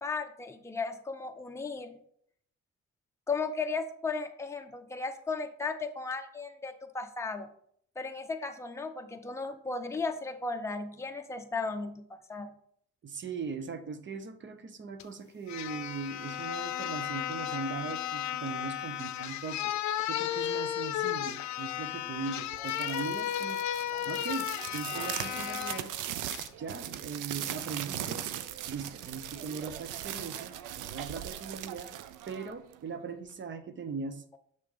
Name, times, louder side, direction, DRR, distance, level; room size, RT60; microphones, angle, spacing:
voice 1, 0.0-1.9 3.3-7.5 8.0-12.0 12.3-12.5, left 4 dB, 10° left, 5 dB, 0.6 m, -35 dB
voice 2, 13.0-25.9 26.6-28.3 28.7-31.9 32.3-34.2, right 5 dB, 40° right, 10 dB, 0.7 m, -40 dB
sound 1, 15.0-15.1 15.5-25.8 26.3-26.5, left 11 dB, 70° left, 0.5 m, -34 dB
sound 2, 22.5-32.9, right 11 dB, 90° right, 0.5 m, -39 dB
6.7 x 3.4 x 4.9 m, 0.65 s
cardioid pair, 90°, 30 cm